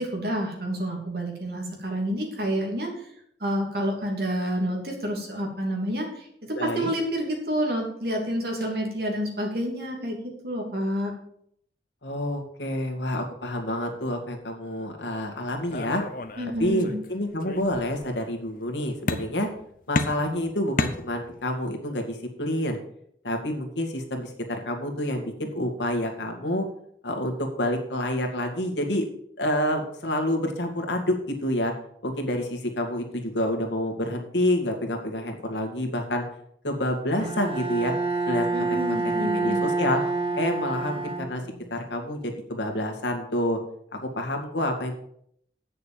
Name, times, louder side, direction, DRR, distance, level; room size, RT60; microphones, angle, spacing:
voice 1, 0.0-3.1 3.4-10.2 10.4-11.1 16.4-17.0 38.5-39.7, equal, 60° right, 1 dB, 2.8 m, -29 dB
voice 2, 6.6-6.9 12.0-16.0 16.6-19.5 19.9-22.8 23.2-26.6 27.0-29.0 29.4-31.7 32.0-36.2 36.6-37.9 38.3-38.5 39.0-40.0 40.3-41.4 41.7-43.6 44.0-44.9, left 1 dB, 80° left, 3 dB, 2.1 m, -28 dB
sound 1, 15.7-17.1 17.4-18.1 19.1-19.6 19.9-21.5, left 2 dB, 50° left, 0.8 m, -31 dB
Bowed string instrument, 37.2-41.7, right 3 dB, 30° right, 1.3 m, -27 dB
8.5 x 6.7 x 7.4 m, 0.68 s
head